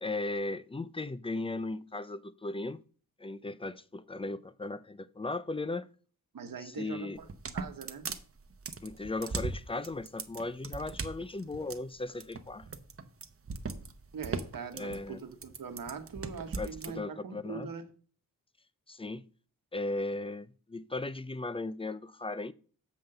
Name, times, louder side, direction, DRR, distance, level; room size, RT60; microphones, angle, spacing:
voice 1, 0.0-2.8 3.2-5.9 6.6-7.2 8.8-12.7 14.7-15.2 16.6-17.7 18.9-19.2 19.7-22.5, left 2 dB, 15° left, 0.4 m, -37 dB
voice 2, 6.3-7.3 7.5-8.1 14.1-17.9, right 6 dB, 70° right, 1.3 m, -42 dB
sound 1, 7.2-16.9, right 4 dB, 40° right, 0.8 m, -39 dB
7.0 x 5.8 x 6.5 m
wide cardioid pair, 110°, 36 cm